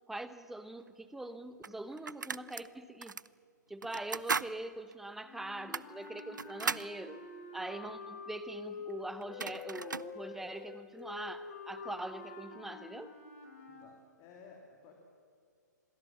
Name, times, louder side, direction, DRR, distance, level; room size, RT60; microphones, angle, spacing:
voice 1, 0.1-3.2 3.7-7.2 7.5-13.1, right 2 dB, 5° right, 12 dB, 0.9 m, -43 dB
sound 1, 0.9-1.0 1.6-2.7 3.0-3.3 3.8-4.5 4.9-5.0 5.6-6.9 8.9-9.0 9.2-10.1, right 5 dB, 80° right, 0.5 m, -37 dB
sound 2, 5.2-13.9, left 5 dB, 45° left, 3.2 m, -47 dB
voice 2, 13.8-14.9, left 5 dB, 30° left, 1 dB, 2.9 m, -55 dB
27.5 x 19.5 x 7.3 m, 2.3 s
figure-of-eight pair, 120°, 10 cm